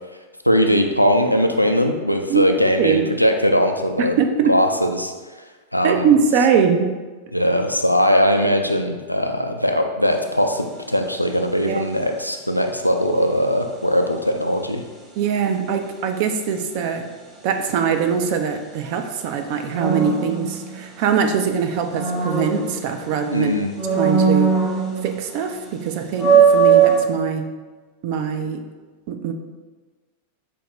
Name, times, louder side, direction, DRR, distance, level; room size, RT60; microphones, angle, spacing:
voice 1, 0.5-4.2 4.5-5.1 5.7-6.1 7.3-14.8 23.3-23.7, equal, 90° left, 4 dB, 0.3 m, -20 dB
voice 2, 2.8-3.1 4.0-4.6 5.8-6.9 11.7-11.9 15.2-17.1 17.4-23.5 24.0-24.6 25.0-27.6 28.0-28.7 29.1-29.3, right 6 dB, 45° right, 6 dB, 0.4 m, -22 dB
sound 1, 10.1-10.4 19.7-21.2 21.6-23.3 23.7-25.3 25.6-25.7 26.1-27.0, right 6 dB, 20° right, 0.7 m, -19 dB
4.3 x 2.7 x 3.0 m, 1.3 s
figure-of-eight pair, 90°, 0 cm